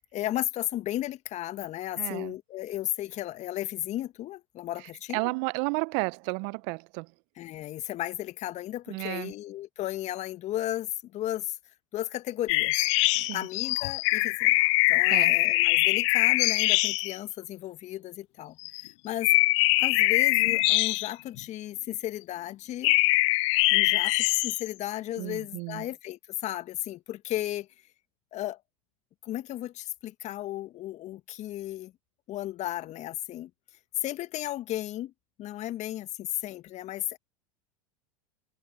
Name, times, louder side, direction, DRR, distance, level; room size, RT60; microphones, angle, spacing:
voice 1, 0.0-5.3 7.4-11.6 11.9-12.8 13.3-14.6 14.9-19.4 19.8-22.9 23.7-27.7 28.3-28.6 29.2-31.9 32.3-33.5 34.0-35.1 35.4-37.2, left 14 dB, 40° left, 1.9 m, -34 dB
voice 2, 2.0-2.3 5.1-7.1 8.9-9.3 13.1-13.5 15.1-15.4 25.2-25.8, right 32 dB, 55° right, 0.9 m, -32 dB
sound 1, 12.5-17.2 18.7-18.9 19.2-21.4 22.8-24.7, left 24 dB, 60° left, 0.6 m, -23 dB
hypercardioid pair, 85°, 18 cm